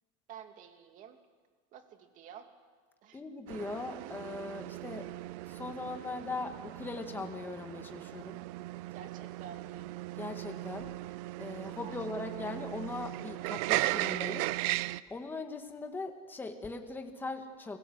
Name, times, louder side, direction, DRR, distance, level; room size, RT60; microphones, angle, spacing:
voice 1, 0.3-1.2 1.7-2.5 3.0-3.2 8.9-9.9 11.6-12.3, right 8 dB, 45° right, 6 dB, 2.7 m, -50 dB
voice 2, 3.1-5.1 5.5-8.4 10.2-11.0 11.4-14.5 15.1-17.8, left 3 dB, 10° left, 4 dB, 2.0 m, -40 dB
sound 1, 3.5-15.0, right 19 dB, 75° right, 0.7 m, -37 dB
29.5 x 22.5 x 8.1 m, 1.5 s
cardioid pair, 160°, 19 cm